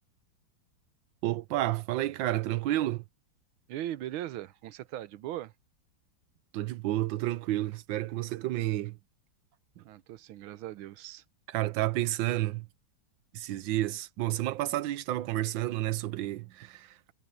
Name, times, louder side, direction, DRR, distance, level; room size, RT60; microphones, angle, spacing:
voice 1, 1.2-3.0 6.5-9.0 11.5-12.7 13.3-17.1, right 15 dB, 75° right, 1.4 m, -30 dB
voice 2, 3.7-5.5 9.8-11.2, right 13 dB, 90° right, 1.6 m, -39 dB
omnidirectional pair, 2.2 m